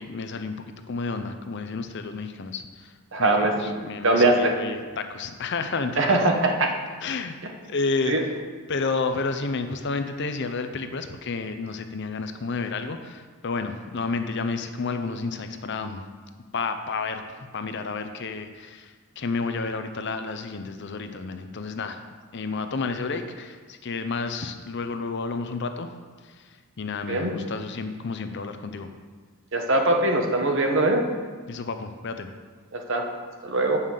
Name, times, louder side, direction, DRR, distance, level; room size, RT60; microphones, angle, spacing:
voice 1, 0.0-2.9 3.2-6.0 7.0-7.4 7.7-8.2 8.7-16.0 16.5-22.0 22.3-25.9 26.8-28.9 31.5-32.3, left 4 dB, 50° left, 8 dB, 0.6 m, -31 dB
voice 2, 3.1-3.8 4.0-4.6 6.0-6.7 8.1-8.2 27.1-27.3 29.5-31.0 32.7-33.0 33.4-33.8, right 2 dB, 55° right, 3 dB, 1.0 m, -21 dB
7.3 x 5.6 x 6.5 m, 1.5 s
head